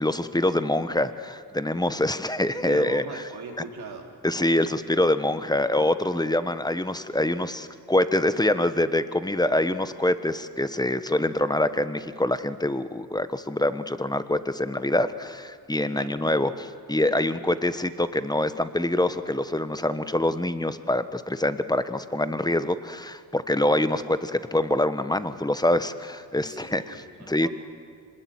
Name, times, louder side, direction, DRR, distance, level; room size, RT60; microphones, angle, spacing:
voice 1, 0.0-3.0 4.2-27.5, left 1 dB, 10° left, 12 dB, 1.3 m, -25 dB
voice 2, 2.6-4.1 15.9-16.2 26.4-27.5, right 4 dB, 80° right, 1 dB, 3.8 m, -40 dB
25.5 x 20.5 x 9.6 m, 2.1 s
supercardioid pair, 55°, 38 cm